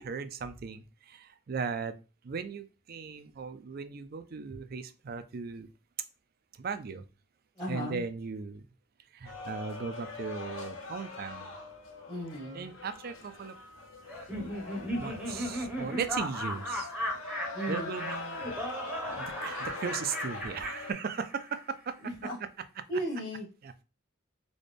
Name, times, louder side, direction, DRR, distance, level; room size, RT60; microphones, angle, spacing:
voice 1, 0.0-2.0 2.2-5.7 6.6-7.0 7.7-8.6 9.1-11.5 12.5-13.6 15.0-16.9 17.7-18.6 19.2-22.0 23.6-23.8, right 5 dB, 50° right, 0.4 m, -37 dB
voice 2, 7.6-8.0 12.1-12.7 17.5-18.0 22.0-22.4 22.9-23.5, equal, 20° left, 1.0 m, -35 dB
sound 1, 9.2-20.9, left 2 dB, 90° left, 0.6 m, -43 dB
Laughter, 14.1-21.6, equal, 5° right, 0.8 m, -36 dB
4.1 x 2.3 x 3.2 m
head